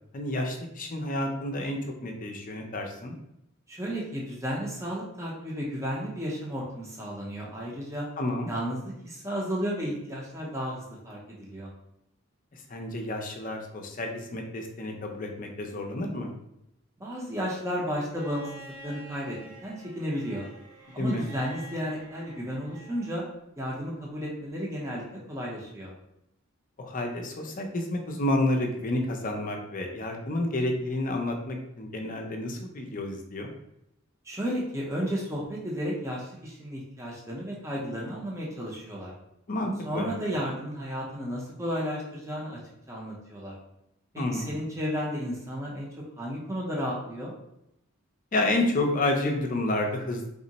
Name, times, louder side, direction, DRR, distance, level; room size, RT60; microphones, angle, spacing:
voice 1, 0.1-3.2 8.2-8.5 12.5-16.3 21.0-21.3 26.8-33.5 39.5-40.1 44.2-44.6 48.3-50.3, left 1 dB, 40° left, 2 dB, 0.5 m, -30 dB
voice 2, 3.7-8.0 8.5-11.7 17.0-20.5 20.9-23.2 23.6-25.9 34.3-39.1 39.8-42.6 42.9-43.5 44.1-45.9 46.2-47.3, equal, 15° right, -4 dB, 0.6 m, -33 dB
Bowed string instrument, 18.1-23.2 24.6-24.7, right 1 dB, 85° right, 0.8 m, -48 dB
3.6 x 2.0 x 3.9 m, 0.81 s
head